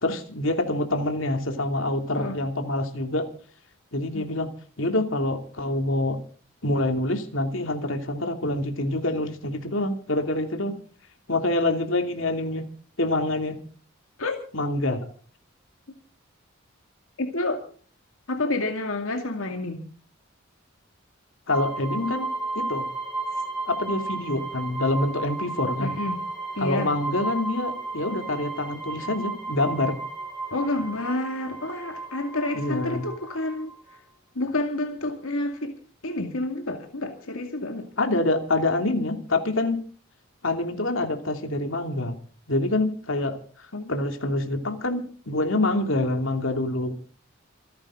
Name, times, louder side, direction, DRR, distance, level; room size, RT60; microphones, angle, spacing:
voice 1, 0.0-3.3 3.9-4.5 4.8-6.2 6.6-10.7 11.3-12.6 13.0-13.6 14.5-15.0 21.5-22.3 22.5-22.9 23.7-25.9 26.6-30.0 32.5-33.0 38.0-39.8 40.4-42.2 42.5-46.9, left 2 dB, 65° left, 5 dB, 2.9 m, -26 dB
voice 2, 17.2-17.6 18.3-19.8 25.8-26.2 26.5-26.9 30.5-33.7 34.4-35.8 36.0-37.9 43.7-43.9, left 2 dB, 85° left, 4 dB, 2.4 m, -29 dB
sound 1, 21.5-34.0, right 3 dB, 5° right, 4.7 m, -34 dB
27.5 x 11.0 x 3.8 m, 0.43 s
head